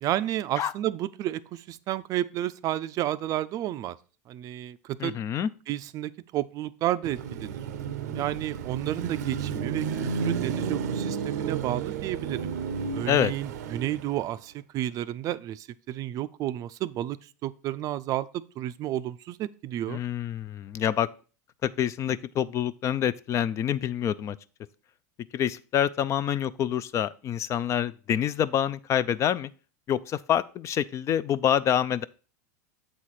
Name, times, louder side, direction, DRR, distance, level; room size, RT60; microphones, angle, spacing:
voice 1, 0.0-4.0 4.3-5.1 5.7-7.6 8.1-12.5 12.9-20.0, right 13 dB, 40° right, 15 dB, 0.4 m, -31 dB
voice 2, 5.0-5.5 13.1-13.3 19.9-21.1 21.6-24.4 25.3-29.5 29.9-32.0, left 9 dB, 35° left, 17 dB, 0.4 m, -26 dB
Car passing by / Traffic noise roadway noise / Engine, 7.0-14.4, right 6 dB, 80° right, 0.6 m, -32 dB
7.7 x 4.2 x 4.8 m, 0.36 s
supercardioid pair, 110°, 9 cm